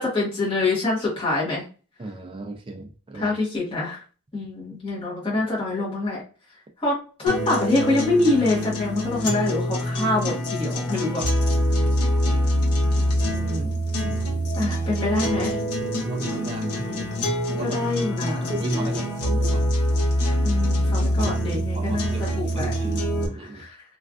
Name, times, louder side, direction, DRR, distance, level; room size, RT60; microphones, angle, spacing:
voice 1, 0.0-1.6 3.1-4.0 4.3-6.2 6.8-11.2 13.3-13.7 14.6-15.5 17.6-18.6 20.4-22.7 23.4-23.8, left 2 dB, 25° left, -6 dB, 1.1 m, -25 dB
voice 2, 2.0-3.4 11.5-12.0 12.3-12.4 14.0-14.4 15.8-17.1 17.5-17.8 18.2-19.7 21.2-21.3 21.7-22.2 22.6-23.6, right 2 dB, 25° right, 2 dB, 0.3 m, -35 dB
sound 1, 7.3-23.3, equal, 85° left, 0.8 m, -24 dB
3.2 x 2.4 x 2.4 m, 0.35 s
head